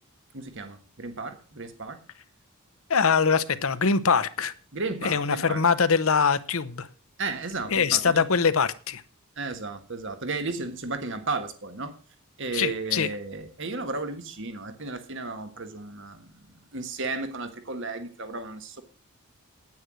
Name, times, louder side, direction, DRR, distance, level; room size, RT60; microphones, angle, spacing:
voice 1, 0.3-2.0 4.7-5.6 7.2-8.2 9.4-11.9 12.4-18.8, right 3 dB, 55° right, 9 dB, 1.6 m, -34 dB
voice 2, 2.9-4.5 5.0-6.9 7.7-9.0 12.5-13.1, left 5 dB, 65° left, 12 dB, 0.8 m, -23 dB
9.5 x 9.5 x 6.2 m, 0.37 s
head